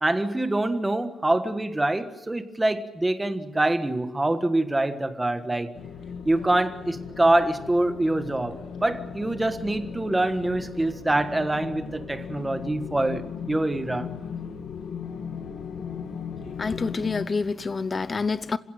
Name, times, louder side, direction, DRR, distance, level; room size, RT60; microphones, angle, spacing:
voice 1, 0.0-5.7 6.2-14.1, right 1 dB, 10° right, 1.5 m, -25 dB
sound 1, 5.7-17.3, left 7 dB, 90° left, 2.5 m, -37 dB
voice 2, 16.6-18.6, left 4 dB, 25° left, 0.8 m, -27 dB
27.5 x 16.5 x 9.1 m
wide cardioid pair, 175°, 0 cm